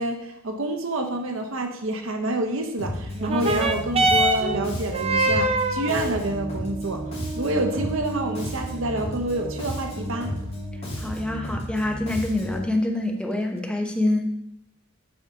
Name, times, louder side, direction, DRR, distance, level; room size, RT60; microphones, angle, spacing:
voice 1, 0.0-10.3, right 1 dB, 80° right, 4 dB, 1.0 m, -28 dB
Bass guitar, 2.8-12.7, equal, 30° left, 3.1 m, -33 dB
sound 1, 3.1-12.1 13.0-13.1, right 2 dB, 30° right, 0.6 m, -27 dB
voice 2, 11.0-14.3, left 1 dB, 5° left, 2 dB, 0.9 m, -26 dB
8.3 x 5.3 x 3.7 m, 0.77 s
head